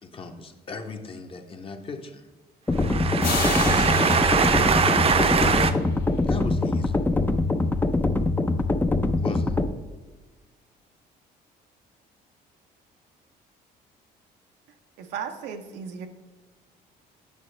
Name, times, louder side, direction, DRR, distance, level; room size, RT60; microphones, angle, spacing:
voice 1, 0.0-2.3 3.9-4.1 5.5-5.8 6.3-7.1 9.2-9.6, left 4 dB, 30° left, 5 dB, 0.8 m, -37 dB
sound 1, 2.7-9.7, left 2 dB, 10° left, 0.4 m, -23 dB
voice 2, 2.7-5.7, right 6 dB, 35° right, 9 dB, 0.6 m, -22 dB
sound 2, 3.2-6.1, left 5 dB, 65° left, 1.2 m, -33 dB
voice 3, 15.0-16.1, right 7 dB, 90° right, 6 dB, 0.8 m, -35 dB
8.2 x 6.0 x 3.3 m, 1.3 s
cardioid pair, 110°, 17 cm